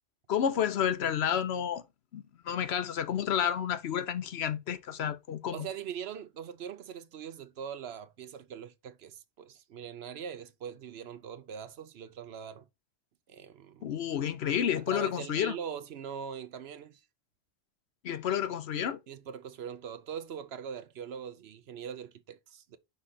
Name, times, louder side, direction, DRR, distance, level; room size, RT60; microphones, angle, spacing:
voice 1, 0.3-1.8 2.1-5.7 13.8-15.5 18.0-19.0, left 9 dB, 75° left, 1.0 m, -30 dB
voice 2, 5.5-12.7 13.3-13.9 14.8-17.0 19.1-22.8, right 8 dB, 75° right, 0.9 m, -42 dB
5.2 x 5.0 x 4.2 m
omnidirectional pair, 1.1 m